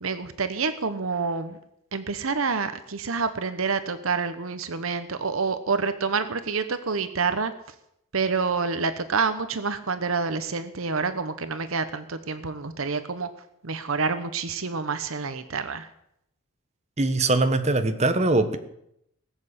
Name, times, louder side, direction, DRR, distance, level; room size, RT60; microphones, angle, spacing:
voice 1, 0.0-1.6 1.9-7.5 8.1-13.3 13.6-15.9, right 4 dB, 65° right, 11 dB, 1.0 m, -28 dB
voice 2, 17.0-18.6, right 2 dB, 30° right, 8 dB, 1.3 m, -22 dB
18.5 x 7.8 x 8.5 m, 0.76 s
head